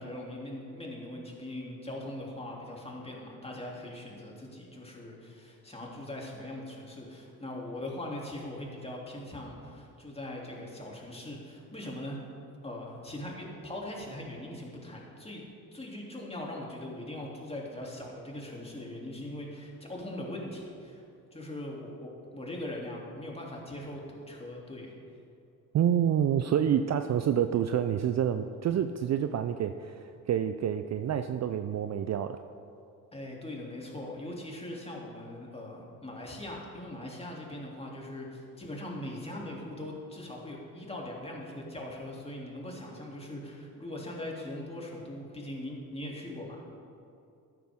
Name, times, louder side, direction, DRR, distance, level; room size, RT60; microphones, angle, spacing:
voice 1, 0.0-12.2 12.6-15.4 15.7-21.0 21.3-24.9 33.1-46.6, left 1 dB, 15° left, -2 dB, 3.0 m, -41 dB
voice 2, 25.7-32.4, right 9 dB, 40° right, 9 dB, 0.5 m, -28 dB
13.5 x 9.6 x 3.7 m, 2.6 s
supercardioid pair, 65°, 41 cm